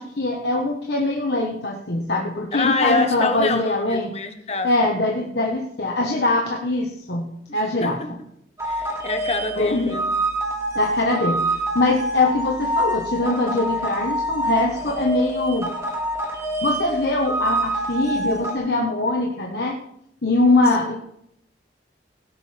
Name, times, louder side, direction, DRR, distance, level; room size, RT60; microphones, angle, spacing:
voice 1, 0.0-4.1 4.6-7.3 7.5-8.0 9.6-10.0 10.7-15.7 16.6-19.8 20.2-21.0, left 2 dB, 70° left, -1 dB, 1.4 m, -22 dB
voice 2, 2.5-4.7 7.5-8.1 8.6-10.1 20.8-21.0, left 3 dB, 35° left, 6 dB, 1.4 m, -26 dB
sound 1, 8.6-18.5, right 1 dB, 15° right, 2.1 m, -26 dB
17.5 x 10.5 x 3.5 m, 0.75 s
head